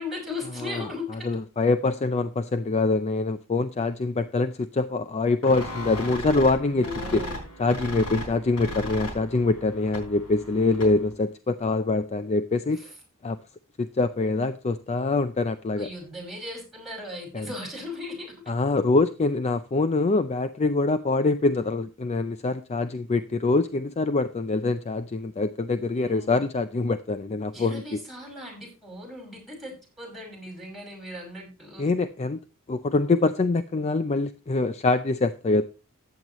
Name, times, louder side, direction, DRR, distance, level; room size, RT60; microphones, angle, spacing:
voice 1, 0.0-1.1 6.7-7.4 12.7-12.9 15.8-18.3 26.0-26.3 27.5-31.9, left 2 dB, ahead, 0 dB, 5.7 m, -37 dB
voice 2, 0.6-7.2 7.6-12.9 13.2-13.4 13.8-15.9 17.3-17.5 18.5-28.0 31.8-32.4 32.7-35.6, left 3 dB, 30° left, 11 dB, 0.5 m, -25 dB
sound 1, 5.4-11.1, equal, 85° left, 3.8 m, -36 dB
14.5 x 9.0 x 3.0 m, 0.32 s
head